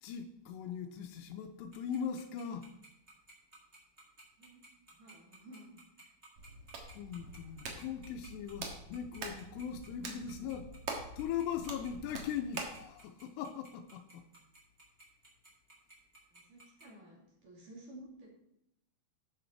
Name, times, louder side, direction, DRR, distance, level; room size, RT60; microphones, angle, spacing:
voice 1, 0.0-2.7 6.9-10.7 11.2-14.2, left 8 dB, 80° left, 2.6 m, -40 dB
Tick-tock, 1.7-16.8, right 2 dB, 20° right, 1.7 m, -57 dB
voice 2, 4.9-6.1 16.3-18.3, right 1 dB, 50° right, 4.1 m, -54 dB
Hands, 6.4-12.8, right 3 dB, 75° right, 1.3 m, -45 dB
12.0 x 6.1 x 4.5 m
omnidirectional pair, 5.1 m